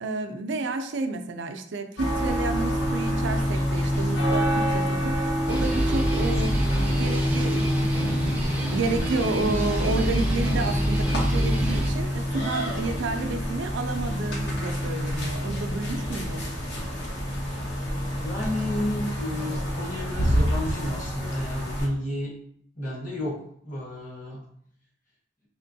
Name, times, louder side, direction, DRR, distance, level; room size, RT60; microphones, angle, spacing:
voice 1, 0.0-16.4, right 3 dB, 65° right, 7 dB, 0.4 m, -31 dB
sound 1, 2.0-21.9, equal, 60° left, 0.8 m, -27 dB
sound 2, 5.5-11.9, right 1 dB, 10° right, 0.5 m, -28 dB
voice 2, 18.2-22.3 22.8-24.4, left 1 dB, 45° left, -4 dB, 1.3 m, -32 dB
4.3 x 3.0 x 2.7 m, 0.66 s
head